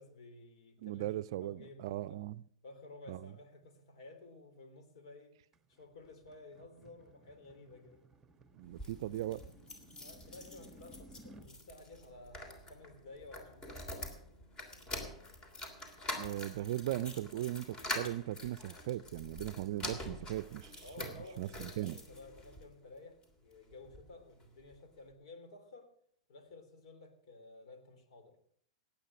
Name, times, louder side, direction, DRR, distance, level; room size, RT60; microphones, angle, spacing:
voice 1, 0.0-1.1 1.4-2.2 2.6-5.4 5.7-8.0 10.0-14.1 20.8-25.9 26.3-28.4, left 2 dB, 65° left, 3.5 m, -54 dB
voice 2, 0.8-2.3 3.1-3.2 8.6-9.4 16.1-20.7 21.4-22.0, right 14 dB, 55° right, 0.5 m, -38 dB
sound 1, 5.5-11.5, right 1 dB, 15° right, 1.2 m, -59 dB
sound 2, 8.6-22.6 23.2-24.1 24.4-24.5 24.7-24.8, left 1 dB, 20° left, 3.1 m, -46 dB
18.0 x 8.4 x 6.1 m
hypercardioid pair, 110°, 3 cm